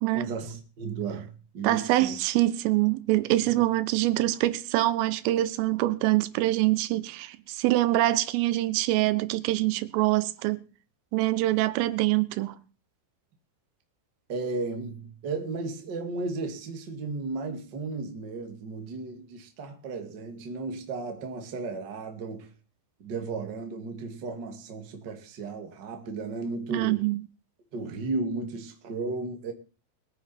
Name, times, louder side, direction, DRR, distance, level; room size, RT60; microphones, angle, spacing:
voice 1, 0.1-2.2 14.3-22.5 23.0-27.1 27.7-29.5, right 3 dB, 40° right, 1.6 m, -34 dB
voice 2, 1.6-10.7 11.1-12.5 26.7-27.2, right 16 dB, 85° right, 3.4 m, -25 dB
23.0 x 9.3 x 4.4 m
omnidirectional pair, 5.7 m